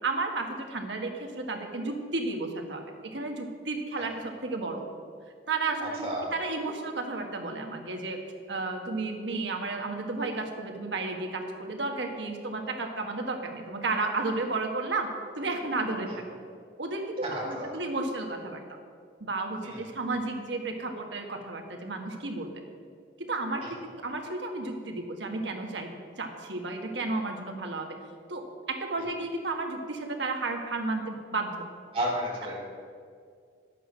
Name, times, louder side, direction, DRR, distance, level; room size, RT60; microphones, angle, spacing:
voice 1, 0.0-4.9 5.5-8.2 8.5-15.1 15.4-16.1 16.8-18.6 19.2-22.5 23.2-23.8 24.0-25.9 26.2-28.0 28.3-31.6, right 3 dB, 85° right, 3 dB, 1.5 m, -32 dB
voice 2, 5.8-6.3 17.2-17.7 19.6-19.8 23.6-23.7 29.0-29.1 31.9-32.6, right 1 dB, 35° right, -5 dB, 3.5 m, -32 dB
11.5 x 8.3 x 6.2 m, 2.2 s
head